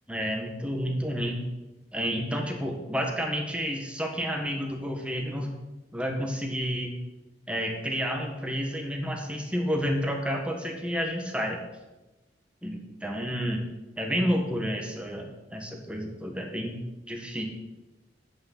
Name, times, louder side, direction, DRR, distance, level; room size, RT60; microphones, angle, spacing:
voice 1, 0.1-1.4 1.9-5.5 5.9-7.0 7.5-11.6 12.6-13.7 14.0-16.8 17.1-17.4, equal, 5° right, 2 dB, 1.6 m, -30 dB
8.9 x 6.3 x 7.7 m, 1.0 s
head